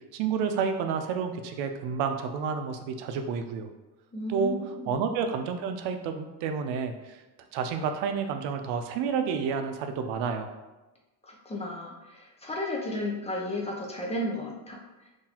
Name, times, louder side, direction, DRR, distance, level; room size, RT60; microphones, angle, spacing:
voice 1, 0.1-3.7 4.3-4.6 4.9-7.2 7.5-10.5, right 6 dB, 85° right, 6 dB, 0.6 m, -30 dB
voice 2, 4.1-5.0 11.2-14.8, left 1 dB, 15° left, -2 dB, 0.4 m, -33 dB
3.9 x 2.7 x 2.8 m, 1.1 s
cardioid pair, 135°, 43 cm